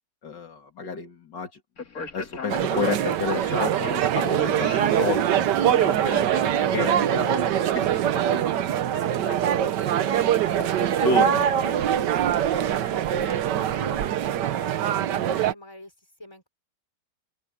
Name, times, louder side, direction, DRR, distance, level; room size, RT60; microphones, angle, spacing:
voice 1, 0.2-1.6 2.1-3.8 4.1-5.7 6.0-7.4 7.7-9.8 10.1-10.2 10.6-12.1, left 4 dB, 80° left, 3.0 m, -31 dB
Speech, 1.8-6.8, left 5 dB, 55° left, 2.7 m, -36 dB
sound 1, 2.5-15.5, right 10 dB, 75° right, 1.5 m, -23 dB
voice 2, 12.4-14.1 14.5-16.5, left 1 dB, 15° left, 5.2 m, -44 dB
open air
omnidirectional pair, 1.9 m